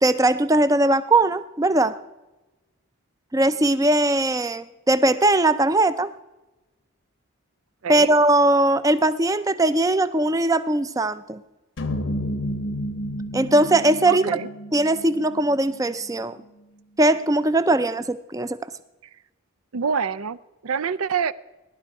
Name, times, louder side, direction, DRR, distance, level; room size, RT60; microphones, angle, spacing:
voice 1, 0.0-2.0 3.3-6.1 7.9-11.4 13.3-14.3 14.7-16.4 17.0-18.6, right 2 dB, 15° right, 13 dB, 0.4 m, -20 dB
voice 2, 7.8-8.1 14.1-14.5 19.7-20.4 20.6-21.3, right 6 dB, 80° right, 17 dB, 0.5 m, -26 dB
sound 1, 11.8-16.1, equal, 55° left, 0.8 m, -31 dB
18.5 x 11.5 x 4.8 m, 1.0 s
head